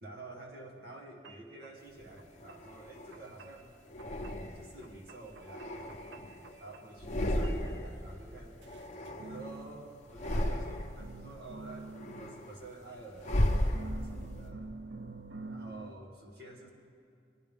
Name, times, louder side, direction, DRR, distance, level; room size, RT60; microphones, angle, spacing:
voice 1, 0.0-3.7 4.5-5.8 6.6-8.6 9.2-14.7 15.5-16.7, right 2 dB, 60° right, 0 dB, 1.4 m, -49 dB
sound 1, 0.7-0.9 1.2-1.7 2.1-2.7 3.1-3.7 4.0-4.5 4.8-7.1 7.4-7.8 8.6-10.7 11.0-13.1 13.7-15.9, right 3 dB, 85° right, 0.5 m, -48 dB
sound 2, 2.0-3.2 3.9-4.9 5.3-6.6 6.9-8.0 8.3-9.6 10.0-11.1 11.5-14.3, left 1 dB, 40° left, 0.9 m, -35 dB
20.5 x 10.5 x 3.6 m, 2.5 s
head